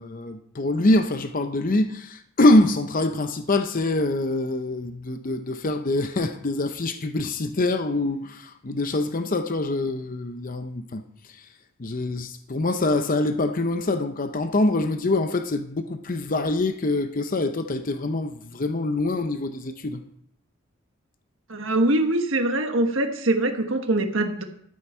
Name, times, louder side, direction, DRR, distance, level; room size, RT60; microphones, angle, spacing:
voice 1, 0.0-11.5 11.8-20.0, left 2 dB, 40° left, 0.7 m, -24 dB
voice 2, 21.5-24.4, right 2 dB, 65° right, 1.4 m, -23 dB
13.0 x 8.7 x 4.4 m
head